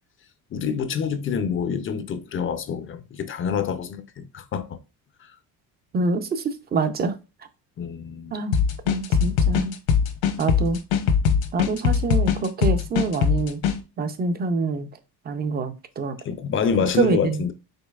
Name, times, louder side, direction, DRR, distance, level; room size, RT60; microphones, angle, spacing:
voice 1, 0.5-4.8 5.2-5.3 7.8-8.4 16.2-17.5, left 6 dB, 35° left, 0.5 m, -27 dB
voice 2, 5.9-7.2 8.3-8.6 8.9-9.8 10.4-10.8 11.5-13.6 14.0-14.9 15.3-16.2 16.9-17.4, right 3 dB, 25° right, 0.5 m, -25 dB
sound 1, 8.5-13.8, left 6 dB, 80° left, 1.1 m, -21 dB
5.2 x 3.9 x 2.3 m
cardioid pair, 150°, 36 cm